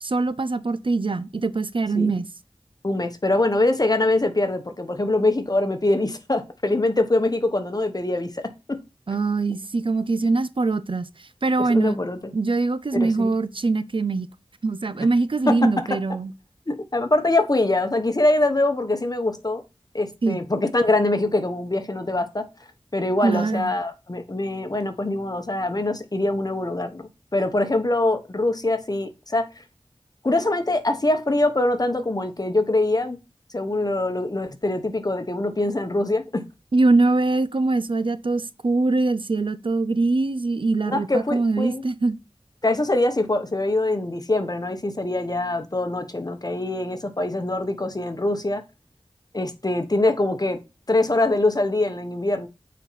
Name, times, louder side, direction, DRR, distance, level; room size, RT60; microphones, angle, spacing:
voice 1, 0.0-2.3 9.1-12.0 12.3-14.3 14.6-16.3 20.2-20.4 23.2-23.7 36.7-42.2, right 3 dB, 60° right, 0.6 m, -23 dB
voice 2, 2.8-8.8 11.6-12.2 12.9-13.3 15.0-15.1 15.5-15.8 16.7-19.6 19.9-22.5 22.9-29.5 30.2-33.2 33.5-36.4 40.9-41.8 42.6-48.6 49.3-50.6 50.9-52.5, left 2 dB, 40° left, 1.2 m, -23 dB
8.9 x 4.4 x 4.1 m
wide cardioid pair, 40°, 10 cm